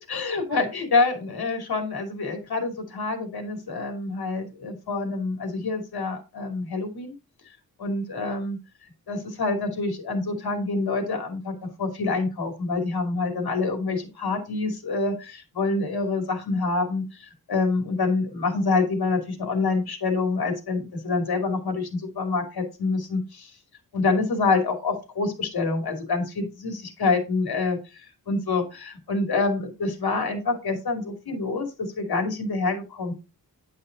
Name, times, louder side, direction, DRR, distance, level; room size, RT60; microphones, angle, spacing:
voice 1, 0.0-7.2 7.8-8.6 9.1-23.5 23.9-33.1, left 3 dB, 80° left, 5 dB, 2.8 m, -27 dB
10.0 x 5.5 x 3.9 m, 0.29 s
wide cardioid pair, 150°, 37 cm